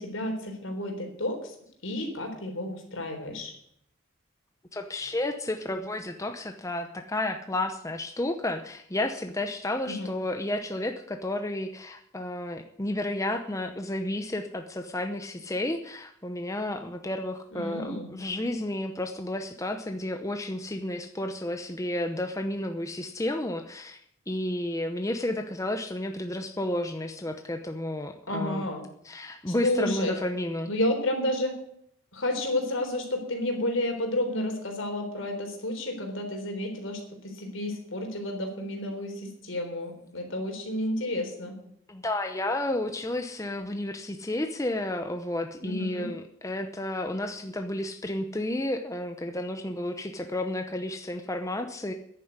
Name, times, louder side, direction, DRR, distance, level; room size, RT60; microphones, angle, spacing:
voice 1, 0.0-1.6 1.8-3.5 9.9-10.1 17.5-18.1 28.3-28.8 29.5-30.2 30.7-31.6 32.1-41.5 45.6-46.1, left 1 dB, 70° left, 3 dB, 3.8 m, -31 dB
voice 2, 4.7-24.0 24.3-28.6 29.0-30.7 41.9-51.9, left 1 dB, 15° left, 6 dB, 0.7 m, -32 dB
10.5 x 9.2 x 9.6 m, 0.71 s
head